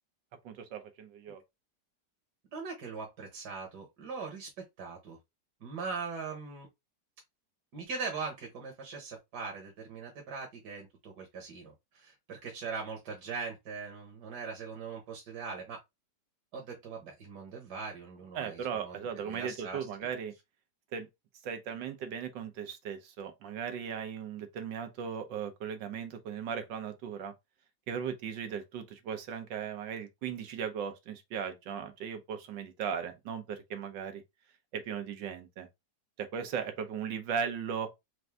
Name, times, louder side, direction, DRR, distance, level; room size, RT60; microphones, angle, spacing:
voice 1, 0.4-1.4 18.3-20.3 20.9-21.1 21.4-27.3 27.9-34.2 34.7-35.7 36.2-37.9, right 7 dB, 90° right, 1.5 m, -37 dB
voice 2, 2.5-4.5 4.8-5.2 5.6-6.7 7.7-15.8 16.5-18.9 19.2-19.8, right 5 dB, 65° right, 1.6 m, -41 dB
4.6 x 2.6 x 3.3 m
omnidirectional pair, 1.9 m